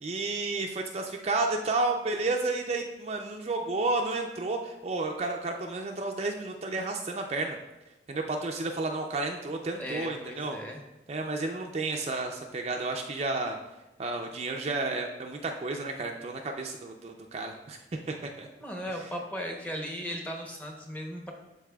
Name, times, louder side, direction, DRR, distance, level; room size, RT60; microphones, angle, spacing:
voice 1, 0.0-7.6 8.1-10.6 11.1-13.6 14.0-17.8 18.1-18.5, right 3 dB, 35° right, 2 dB, 0.4 m, -31 dB
voice 2, 9.8-10.8 18.6-21.3, equal, 10° left, 1 dB, 0.8 m, -37 dB
12.0 x 4.0 x 2.3 m, 1.0 s
head